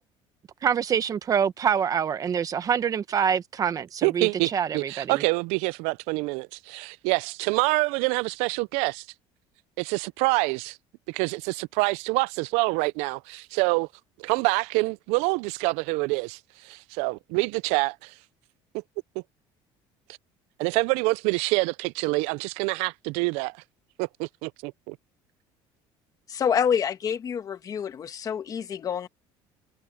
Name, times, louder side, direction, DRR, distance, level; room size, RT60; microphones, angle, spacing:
voice 1, 0.6-5.2, right 7 dB, 35° right, 1.0 m, -26 dB
voice 2, 4.0-9.1 9.8-10.8 11.1-13.9 14.2-18.1 20.6-23.5 24.0-25.0, right 26 dB, 90° right, 0.4 m, -26 dB
voice 3, 26.3-29.1, left 7 dB, 35° left, 1.4 m, -27 dB
cardioid pair, 140°, 11 cm